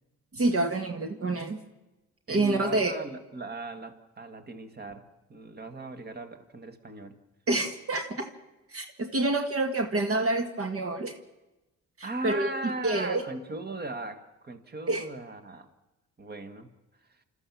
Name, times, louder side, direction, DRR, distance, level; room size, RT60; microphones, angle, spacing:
voice 1, 0.3-1.6 2.3-2.9 7.5-8.3 8.7-11.2 12.0-13.2 14.9-15.0, right 2 dB, 50° right, 5 dB, 1.8 m, -27 dB
voice 2, 2.3-7.2 12.0-15.7 16.2-16.7 17.1-17.2, right 2 dB, 35° right, 9 dB, 1.9 m, -38 dB
28.5 x 13.5 x 7.1 m, 1.0 s
cardioid pair, 90°, 30 cm